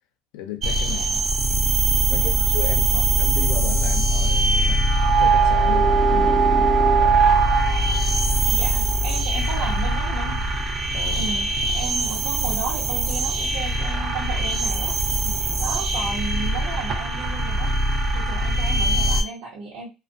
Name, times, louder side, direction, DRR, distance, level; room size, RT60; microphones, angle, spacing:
voice 1, 0.3-1.1 1.5-1.7 2.1-6.6 10.9-11.3 15.2-15.5, left 10 dB, 85° left, 0.6 m, -35 dB
sound 1, 0.6-19.2, right 2 dB, 35° right, 0.5 m, -21 dB
voice 2, 7.5-8.0 8.4-10.4 11.2-15.0 15.6-17.7 18.1-19.9, right 3 dB, 80° right, 0.9 m, -34 dB
2.3 x 2.3 x 2.6 m
cardioid pair, 160°, 0 cm